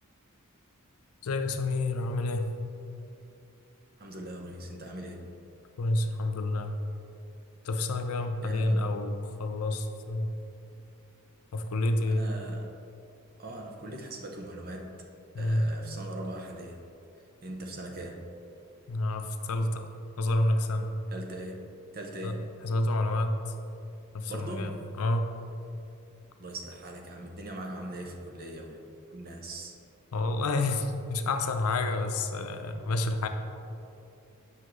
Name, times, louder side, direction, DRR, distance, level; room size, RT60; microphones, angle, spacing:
voice 1, 1.2-2.5 5.8-6.8 7.6-10.3 11.5-12.3 15.3-15.7 18.9-19.9 20.2-20.9 22.2-23.4 24.1-25.3 30.1-33.3, left 2 dB, 75° left, 6 dB, 0.5 m, -29 dB
voice 2, 4.0-5.3 8.4-8.9 12.0-12.7 13.4-15.0 15.4-16.8 17.4-18.3 21.1-22.4 24.3-24.8 26.4-29.8, right 1 dB, 45° right, 2 dB, 0.7 m, -40 dB
8.2 x 5.6 x 3.1 m, 2.7 s
head